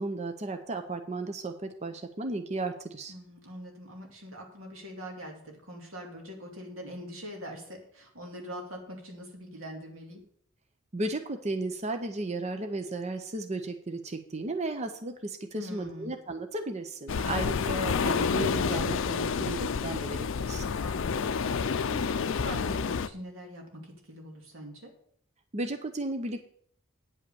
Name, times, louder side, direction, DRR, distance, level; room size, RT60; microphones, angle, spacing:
voice 1, 0.0-3.1 10.9-20.6 25.5-26.4, right 2 dB, 35° right, 6 dB, 0.7 m, -34 dB
voice 2, 3.1-10.2 15.5-16.1 17.1-17.4 20.8-24.9, equal, 80° right, 1 dB, 2.4 m, -43 dB
sound 1, 17.1-23.1, left 5 dB, 65° left, 0.5 m, -29 dB
9.7 x 5.4 x 6.9 m, 0.63 s
head